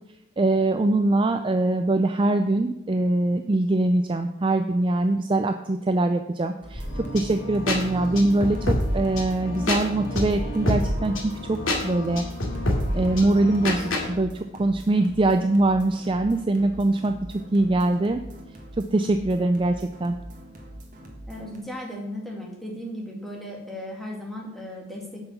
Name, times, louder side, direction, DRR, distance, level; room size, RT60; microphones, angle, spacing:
voice 1, 0.4-6.8 7.1-11.6 11.8-12.2 12.9-17.1 17.5-18.2 18.8-20.2, right 2 dB, 25° right, 7 dB, 0.4 m, -23 dB
sound 1, 6.6-21.6, right 1 dB, 40° right, 1.7 m, -43 dB
sound 2, 6.8-14.1, left 1 dB, 70° left, 2.4 m, -28 dB
voice 2, 21.3-25.2, left 1 dB, ahead, -2 dB, 2.1 m, -36 dB
8.9 x 5.9 x 7.1 m, 0.91 s
head